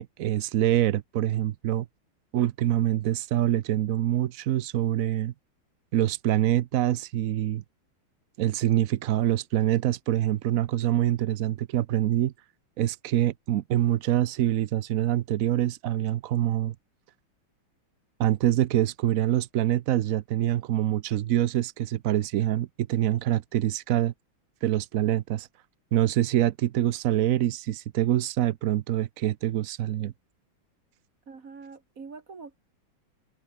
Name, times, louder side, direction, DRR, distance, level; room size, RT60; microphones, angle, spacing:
voice 1, 0.0-1.9 2.3-5.3 5.9-7.6 8.4-12.3 12.8-16.7 18.2-24.1 24.6-25.5 25.9-30.1, right 12 dB, 85° right, 0.7 m, -25 dB
voice 2, 31.3-32.6, right 4 dB, 40° right, 2.4 m, -44 dB
omnidirectional pair, 2.2 m